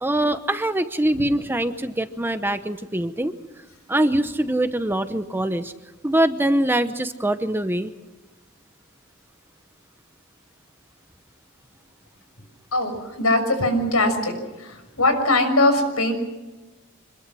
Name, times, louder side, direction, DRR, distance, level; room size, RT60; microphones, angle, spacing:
voice 1, 0.0-3.3 3.9-5.7 6.0-7.9, right 1 dB, 10° right, 10 dB, 0.9 m, -23 dB
voice 2, 13.2-14.3 14.6-16.1, left 2 dB, 80° left, 7 dB, 6.3 m, -21 dB
26.5 x 21.5 x 6.3 m, 1.1 s
head